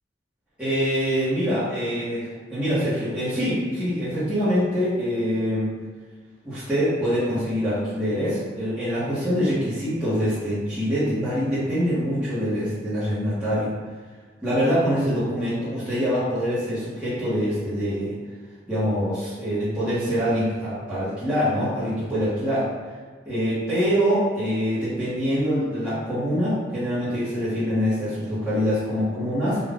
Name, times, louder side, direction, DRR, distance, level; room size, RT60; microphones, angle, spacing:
voice 1, 0.6-5.7 6.4-13.7 14.4-18.1 18.7-22.7 23.2-29.6, equal, 5° right, -14 dB, 1.2 m, -24 dB
3.9 x 2.5 x 3.6 m, 1.5 s
head